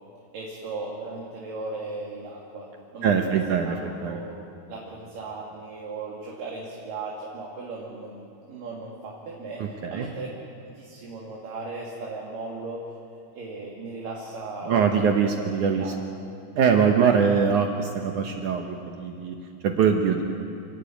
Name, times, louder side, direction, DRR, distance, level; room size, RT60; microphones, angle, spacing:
voice 1, 0.3-2.7 2.9-3.4 3.7-4.4 4.7-10.3 10.6-12.8 13.3-15.1 15.3-15.5 15.8-15.9, right 3 dB, 55° right, -3 dB, 3.8 m, -37 dB
voice 2, 3.0-4.2 9.6-10.1 14.7-15.9 16.6-19.4 19.6-20.2, right 6 dB, 75° right, 4 dB, 1.8 m, -23 dB
29.5 x 12.5 x 9.1 m, 2.8 s
omnidirectional pair, 5.0 m